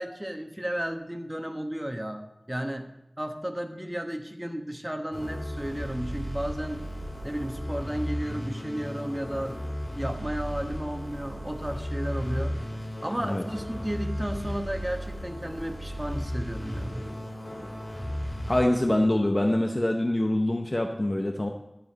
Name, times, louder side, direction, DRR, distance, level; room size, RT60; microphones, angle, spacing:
voice 1, 0.0-2.9 3.2-6.8 7.2-12.5 13.0-17.1, right 1 dB, 15° right, 4 dB, 1.2 m, -33 dB
sound 1, 5.1-18.6, equal, 80° left, 3.4 m, -35 dB
voice 2, 18.5-21.5, left 1 dB, 40° left, 3 dB, 0.8 m, -24 dB
12.0 x 5.1 x 7.8 m, 0.92 s
wide cardioid pair, 50°, 0 cm